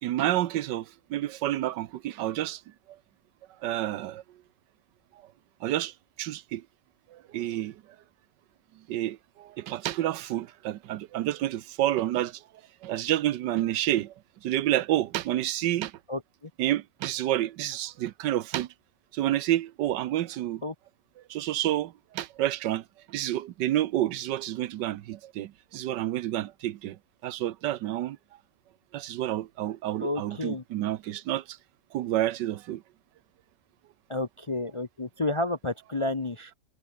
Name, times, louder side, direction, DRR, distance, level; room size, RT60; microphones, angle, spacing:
voice 1, 0.0-2.6 3.6-4.2 5.6-6.6 7.1-7.8 8.9-12.4 12.8-14.1 14.4-15.9 16.6-18.7 19.1-20.6 21.3-28.2 28.9-31.6 31.9-32.8, right 13 dB, 90° right, 1.4 m, -29 dB
voice 2, 30.0-30.6 34.1-36.5, left 2 dB, 35° left, 0.5 m, -30 dB
omnidirectional pair, 1.9 m